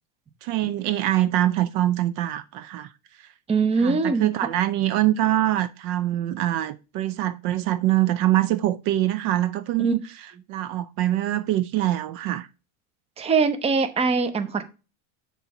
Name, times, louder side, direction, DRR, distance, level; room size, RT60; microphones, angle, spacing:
voice 1, 0.4-2.9 3.2-3.3 3.8-10.0 10.5-12.5, right 14 dB, 55° right, 0.5 m, -24 dB
voice 2, 3.5-4.3 9.8-10.0 13.2-14.6, right 4 dB, 15° right, 0.6 m, -22 dB
6.7 x 3.1 x 5.7 m
supercardioid pair, 115°, 41 cm